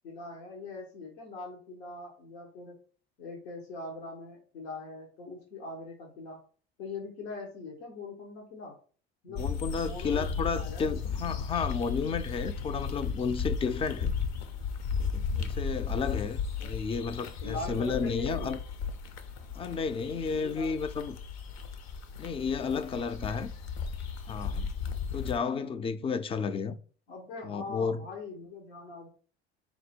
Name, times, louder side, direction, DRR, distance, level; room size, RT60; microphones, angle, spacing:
voice 1, 0.0-2.7 3.2-6.4 6.8-8.7 9.2-10.3 10.5-10.9 16.6-16.7 17.4-18.5 20.3-20.8 23.2-23.4 25.1-25.3 25.5-25.7 27.1-29.1, left 3 dB, 90° left, 1.1 m, -42 dB
voice 2, 9.3-14.1 15.0-18.6 19.5-21.2 22.2-23.5 24.3-24.7 25.1-26.8 27.4-28.0, left 5 dB, 20° left, 0.3 m, -32 dB
sound 1, 9.4-25.4, left 5 dB, 60° left, 0.7 m, -35 dB
4.4 x 2.1 x 4.3 m
supercardioid pair, 85°, 31 cm